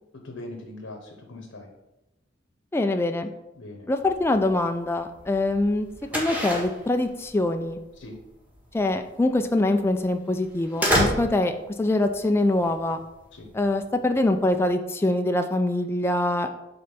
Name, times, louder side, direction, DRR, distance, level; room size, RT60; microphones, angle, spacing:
voice 1, 0.1-1.7 3.6-3.9 8.0-8.2 13.3-13.5, left 2 dB, 75° left, 2 dB, 0.9 m, -41 dB
voice 2, 2.7-3.3 3.9-5.9 6.1-7.8 8.7-11.5 11.8-13.0 13.5-16.5, left 2 dB, 10° left, 6 dB, 0.3 m, -24 dB
sound 1, 4.0-14.7, equal, 10° right, 1.3 m, -31 dB
5.3 x 3.8 x 5.7 m, 0.94 s
head